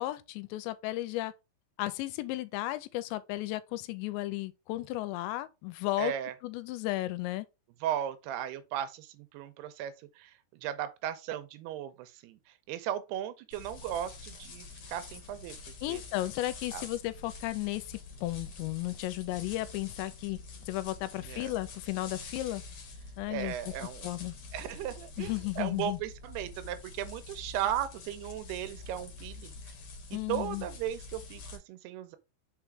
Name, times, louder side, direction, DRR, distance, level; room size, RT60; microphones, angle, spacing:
voice 1, 0.0-1.3 1.8-6.1 6.4-7.5 15.8-22.6 23.2-23.6 24.0-24.3 25.2-26.0 30.1-30.7, left 17 dB, 90° left, 2.9 m, -34 dB
voice 2, 6.0-6.3 7.8-16.0 16.7-16.8 21.2-21.5 23.3-24.1 24.5-29.6 30.1-32.2, right 11 dB, 80° right, 2.5 m, -36 dB
sound 1, 13.5-31.6, left 3 dB, 55° left, 2.0 m, -46 dB
5.8 x 4.5 x 3.6 m
omnidirectional pair, 5.0 m